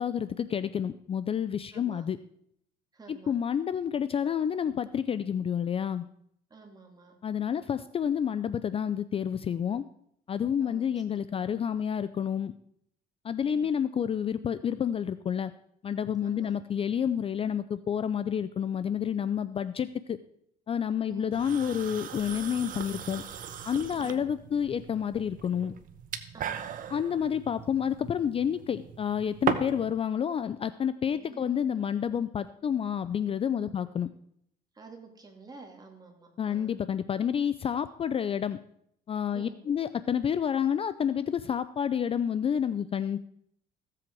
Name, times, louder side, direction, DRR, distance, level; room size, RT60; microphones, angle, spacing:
voice 1, 0.0-2.2 3.1-6.1 7.2-9.8 10.3-12.5 13.2-15.5 15.8-20.2 20.7-23.2 23.6-25.7 26.9-34.1 36.4-38.6 39.1-43.2, left 8 dB, 35° left, 14 dB, 0.4 m, -29 dB
voice 2, 1.7-2.1 2.9-3.4 6.5-7.2 10.6-10.9 11.3-11.4 13.4-13.7 16.2-16.6 21.1-21.4 24.0-24.2 26.3-26.6 31.1-31.8 33.5-33.9 34.7-36.7 39.3-39.6, right 4 dB, 25° right, 2 dB, 2.7 m, -50 dB
sound 1, 21.3-29.9, right 8 dB, 55° right, 1.0 m, -38 dB
15.5 x 7.8 x 4.6 m, 0.71 s
cardioid pair, 110°, 17 cm